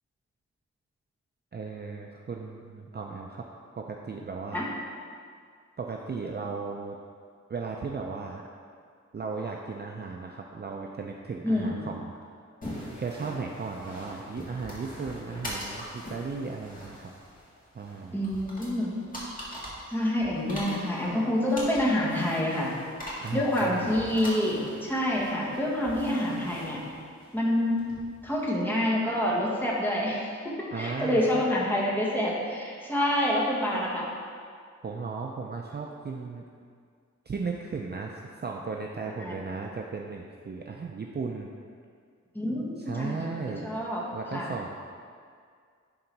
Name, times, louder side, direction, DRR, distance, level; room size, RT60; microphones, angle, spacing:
voice 1, 1.5-3.5 3.8-4.6 5.8-7.0 7.5-8.4 9.1-12.1 13.0-17.1 17.7-18.2 23.2-24.0 30.7-31.5 34.8-36.4 37.3-41.5 42.8-43.7 44.1-44.7, right 4 dB, 35° right, 0 dB, 0.5 m, -36 dB
voice 2, 11.4-11.9 12.6-12.8 18.1-19.0 19.9-22.7 23.3-26.8 27.3-27.8 28.2-34.1 39.2-39.3 42.3-44.0 44.3-44.5, left 1 dB, 5° left, -6 dB, 1.5 m, -27 dB
sound 1, 12.6-28.4, equal, 30° left, 1.8 m, -42 dB
11.0 x 3.8 x 4.6 m, 2.1 s
wide cardioid pair, 150°, 29 cm